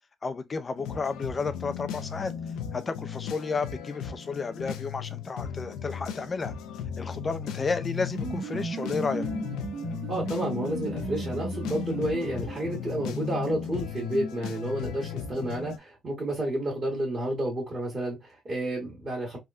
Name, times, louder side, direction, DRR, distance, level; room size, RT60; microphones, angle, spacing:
voice 1, 0.2-2.3 2.7-6.5 7.0-9.3, left 4 dB, 35° left, 0.4 m, -32 dB
sound 1, 0.8-15.8, left 8 dB, 90° left, 0.4 m, -36 dB
sound 2, 7.9-12.8, right 5 dB, 55° right, 0.7 m, -37 dB
voice 2, 10.1-19.4, right 1 dB, 35° right, 1.6 m, -31 dB
3.5 x 2.2 x 2.4 m
cardioid pair, 90°, 0 cm